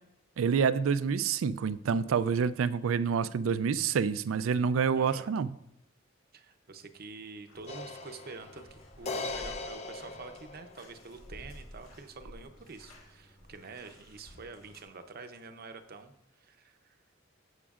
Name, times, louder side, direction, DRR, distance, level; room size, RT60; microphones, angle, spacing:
voice 1, 0.4-5.5, right 6 dB, 80° right, 0.4 m, -27 dB
voice 2, 4.9-5.3 6.3-17.0, right 4 dB, 50° right, 0.7 m, -47 dB
Bathtub (filling or washing), 7.5-14.8, equal, 85° left, 1.7 m, -53 dB
sound 1, 7.7-11.1, left 3 dB, 30° left, 0.5 m, -40 dB
15.5 x 6.1 x 2.4 m
head